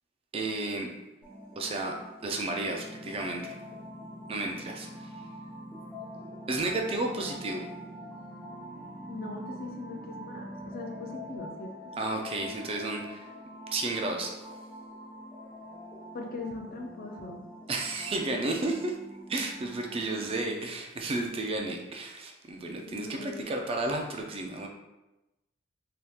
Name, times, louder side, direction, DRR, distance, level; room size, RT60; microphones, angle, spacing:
voice 1, 0.3-0.9 1.6-1.9 2.2-3.5 4.3-5.1 6.5-7.7 12.0-13.3 13.7-14.3 17.7-19.0 19.3-24.7, right 2 dB, 30° right, 2 dB, 0.3 m, -32 dB
sound 1, 1.2-20.4, equal, 10° left, 0.7 m, -45 dB
sound 2, 2.7-11.4, equal, 70° right, 1.0 m, -49 dB
voice 2, 9.1-12.0 16.1-17.4 22.9-23.4, left 3 dB, 45° left, 2 dB, 0.4 m, -40 dB
3.4 x 2.8 x 2.3 m, 1.0 s
head